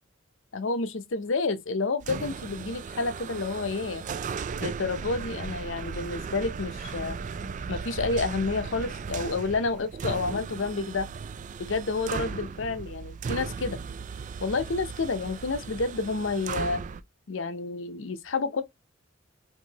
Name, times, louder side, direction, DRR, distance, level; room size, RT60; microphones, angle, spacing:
voice 1, 0.5-4.0 4.6-7.2 7.7-11.1 11.6-13.8 14.4-16.8 17.3-18.6, left 3 dB, 65° left, 0.7 m, -29 dB
sound 1, 2.0-17.0, right 5 dB, 35° right, 0.3 m, -36 dB
4.5 x 3.6 x 2.9 m
head